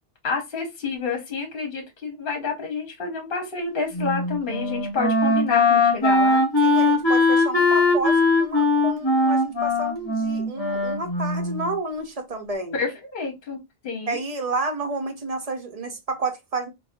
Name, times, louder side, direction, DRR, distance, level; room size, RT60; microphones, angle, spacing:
voice 1, 0.2-6.4 12.7-13.6 13.8-14.2, left 5 dB, 55° left, 1.0 m, -29 dB
Wind instrument woodwind instrument, 3.9-11.7, left 2 dB, 25° left, 1.1 m, -20 dB
voice 2, 6.6-12.8 14.1-16.7, right 3 dB, 40° right, 0.7 m, -30 dB
4.1 x 2.3 x 2.4 m
omnidirectional pair, 1.1 m